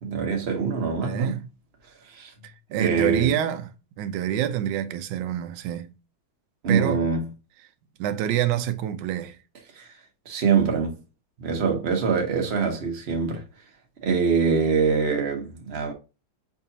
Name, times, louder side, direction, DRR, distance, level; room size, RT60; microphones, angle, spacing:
voice 1, 0.0-1.4 2.1-2.3 2.7-3.3 6.6-7.3 9.8-9.9 10.3-11.0 11.4-13.4 14.0-15.9, right 5 dB, 50° right, 0.8 m, -24 dB
voice 2, 1.0-1.5 2.4-3.7 4.0-5.9 6.7-7.0 8.0-9.4, right 11 dB, 75° right, 1.2 m, -27 dB
4.8 x 2.7 x 2.6 m
omnidirectional pair, 2.1 m